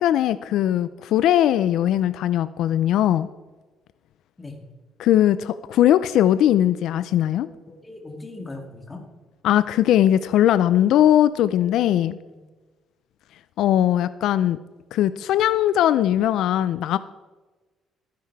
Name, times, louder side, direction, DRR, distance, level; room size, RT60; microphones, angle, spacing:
voice 1, 0.0-3.3 5.0-7.5 9.4-12.2 13.6-14.6 14.9-17.0, left 11 dB, 75° left, 14 dB, 0.4 m, -19 dB
voice 2, 7.4-9.0 9.6-9.7 12.3-12.4, left 2 dB, 15° left, 3 dB, 2.0 m, -39 dB
13.5 x 10.5 x 4.7 m, 1.3 s
cardioid pair, 140°, 0 cm